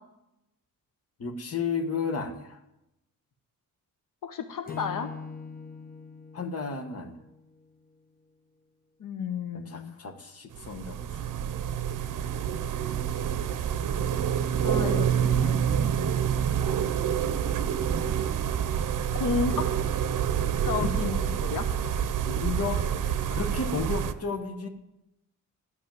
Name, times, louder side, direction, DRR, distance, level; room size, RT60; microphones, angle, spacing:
voice 1, 1.2-2.6 6.3-7.2 9.5-11.3 20.8-20.9 22.2-22.9 23.3-24.7, left 4 dB, 45° left, 5 dB, 1.2 m, -33 dB
voice 2, 4.2-5.1 9.0-10.0 14.6-15.9 19.1-19.7 20.6-21.6, left 6 dB, 75° left, 8 dB, 0.9 m, -32 dB
Acoustic guitar / Strum, 4.7-8.0, left 4 dB, 25° left, 0.9 m, -43 dB
sound 1, 10.5-24.1, right 8 dB, 70° right, 0.7 m, -27 dB
11.5 x 6.3 x 9.0 m, 0.90 s
wide cardioid pair, 170°, 32 cm